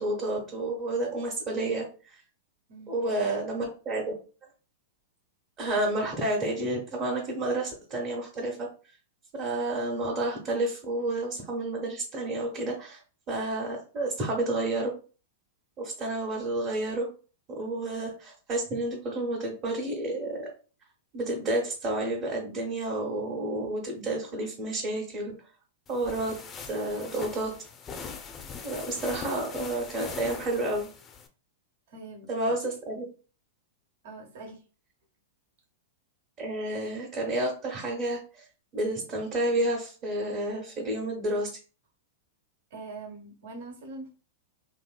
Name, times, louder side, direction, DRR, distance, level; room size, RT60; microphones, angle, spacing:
voice 1, 0.0-2.2 2.9-4.1 5.6-8.7 9.3-13.0 13.3-14.9 15.8-17.1 17.5-20.5 21.1-25.3 25.9-26.3 26.7-27.5 27.9-28.0 28.6-30.9 32.3-33.0 36.4-38.5 38.7-41.5, right 2 dB, 35° right, -2 dB, 1.1 m, -30 dB
voice 2, 2.7-3.3 31.9-32.5 34.0-34.6 42.7-44.1, right 3 dB, 65° right, 1 dB, 1.2 m, -43 dB
sound 1, 25.9-31.3, left 5 dB, 25° left, 0.5 m, -41 dB
2.8 x 2.7 x 2.3 m, 0.35 s
hypercardioid pair, 110°, 0 cm